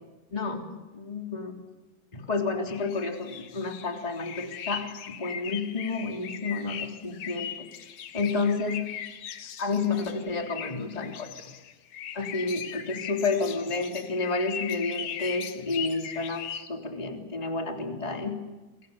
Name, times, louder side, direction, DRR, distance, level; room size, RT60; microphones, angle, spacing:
voice 1, 0.3-0.6 0.9-1.5 2.1-9.2 9.6-11.3 12.1-18.4, left 3 dB, 10° left, 2 dB, 3.1 m, -30 dB
sound 1, 2.7-16.6, left 9 dB, 60° left, 2.0 m, -39 dB
30.0 x 24.5 x 7.0 m, 1.1 s
omnidirectional pair, 4.5 m